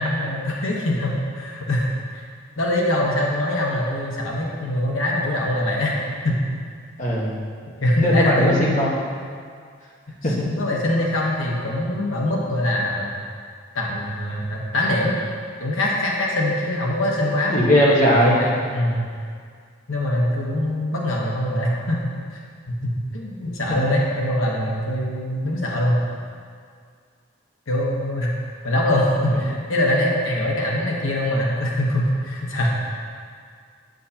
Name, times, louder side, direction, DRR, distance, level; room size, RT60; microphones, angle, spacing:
voice 1, 0.0-2.2 2.6-6.0 6.2-6.4 7.8-8.9 10.4-13.1 13.7-15.1 15.6-17.7 18.2-19.0 19.9-22.4 22.7-26.0 27.7-28.3 28.6-32.7, left 1 dB, 90° left, -3 dB, 1.1 m, -23 dB
voice 2, 7.0-7.3 8.0-8.9 10.2-10.3 17.5-18.4, equal, 40° left, -5 dB, 1.3 m, -18 dB
9.2 x 7.9 x 2.9 m, 2.1 s
head